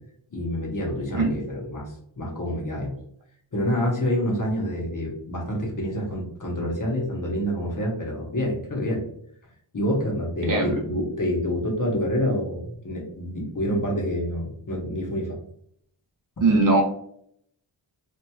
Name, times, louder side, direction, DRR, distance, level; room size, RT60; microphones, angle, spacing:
voice 1, 0.3-3.0 3.5-9.0 9.7-15.4, equal, 40° left, -2 dB, 0.9 m, -27 dB
voice 2, 16.4-16.8, right 3 dB, 40° right, 0 dB, 0.7 m, -19 dB
2.8 x 2.4 x 2.2 m, 0.68 s
wide cardioid pair, 110°, 49 cm